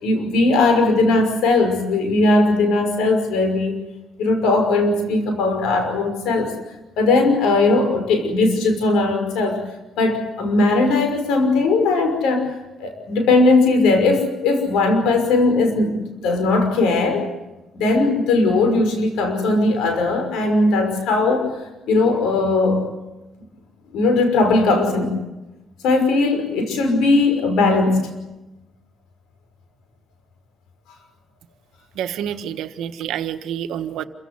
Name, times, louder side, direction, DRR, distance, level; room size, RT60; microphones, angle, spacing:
voice 1, 0.0-3.8 4.2-6.5 7.0-9.6 10.0-12.5 12.8-16.0 16.2-17.3 17.7-21.6 21.9-22.8 23.9-25.1 25.8-28.1, left 3 dB, 90° left, 6 dB, 5.6 m, -18 dB
voice 2, 31.9-34.0, right 10 dB, 85° right, 9 dB, 1.4 m, -28 dB
28.0 x 16.5 x 9.8 m, 1.0 s
cardioid pair, 90°, 0 cm